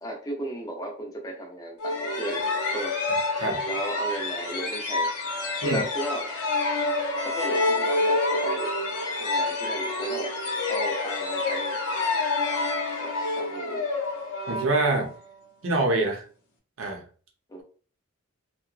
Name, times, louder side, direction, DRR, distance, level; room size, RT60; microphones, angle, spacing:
voice 1, 0.0-2.9 3.7-5.1 5.6-6.3 7.3-8.7 9.2-10.3 10.7-11.8 13.0-13.1 13.4-13.9 17.5-17.6, right 1 dB, 15° left, 1 dB, 0.5 m, -35 dB
sound 1, 1.8-15.3, left 2 dB, 85° left, 0.6 m, -28 dB
voice 2, 14.5-15.1 15.6-16.2 16.8-17.0, right 2 dB, 60° right, 1 dB, 0.7 m, -25 dB
2.8 x 2.1 x 2.4 m, 0.41 s
head